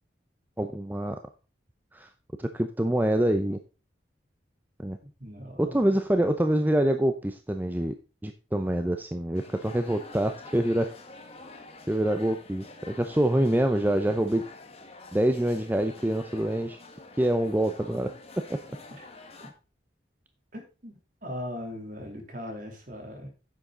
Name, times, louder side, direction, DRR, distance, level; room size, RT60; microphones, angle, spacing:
voice 1, 0.6-1.2 1.9-2.1 2.4-3.6 4.8-5.0 5.6-7.9 8.2-10.9 11.9-14.4 15.1-16.8 17.2-18.1 18.5-18.6, right 1 dB, 10° right, 7 dB, 0.6 m, -26 dB
voice 2, 5.2-6.3 19.0-19.1 20.5-20.9 21.2-23.3, left 1 dB, 45° right, 3 dB, 3.0 m, -39 dB
sound 1, 9.3-19.5, left 3 dB, 30° left, 1.6 m, -48 dB
10.0 x 7.5 x 3.8 m, 0.33 s
head